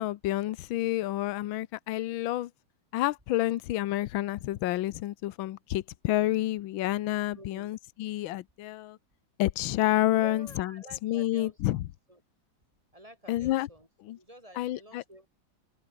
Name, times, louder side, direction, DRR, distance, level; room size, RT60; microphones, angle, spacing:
voice 1, 0.0-2.5 2.9-9.0 9.4-11.9 13.3-13.7 14.0-14.2 14.5-15.0, left 15 dB, 80° left, 1.5 m, -29 dB
voice 2, 7.3-7.7 10.1-11.8 12.1-12.2 12.9-13.9 14.2-15.3, equal, 15° right, 6.3 m, -49 dB
omnidirectional pair, 2.1 m